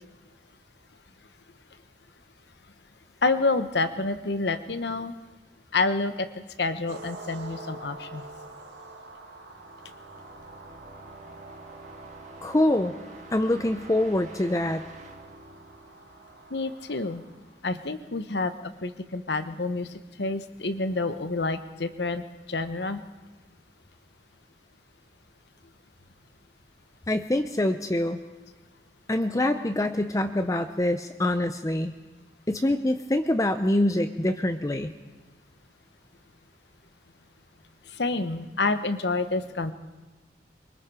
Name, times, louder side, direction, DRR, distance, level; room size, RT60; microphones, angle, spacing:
voice 1, 3.2-5.1 5.7-6.3 6.6-8.2 16.5-17.2 17.6-23.0 37.9-39.7, left 3 dB, 75° left, 10 dB, 1.0 m, -28 dB
sound 1, 6.9-17.6, right 2 dB, 90° right, 1.9 m, -47 dB
sound 2, 9.2-16.9, right 2 dB, 40° right, 1.7 m, -48 dB
voice 2, 12.4-12.9 13.3-14.8 27.1-28.2 29.1-31.9 32.5-34.9, left 1 dB, 20° left, 8 dB, 0.6 m, -25 dB
24.0 x 23.0 x 4.9 m, 1.2 s
head